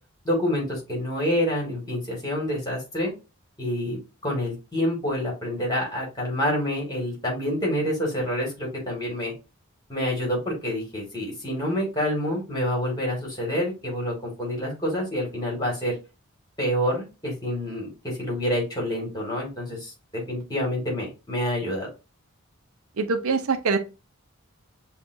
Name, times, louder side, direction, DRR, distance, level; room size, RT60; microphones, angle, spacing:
voice 1, 0.2-3.1 3.6-9.3 9.9-15.9 16.6-21.9, equal, 15° left, 1.8 m, -27 dB
voice 2, 23.0-23.8, right 4 dB, 75° right, 0.6 m, -23 dB
6.9 x 2.3 x 2.6 m
head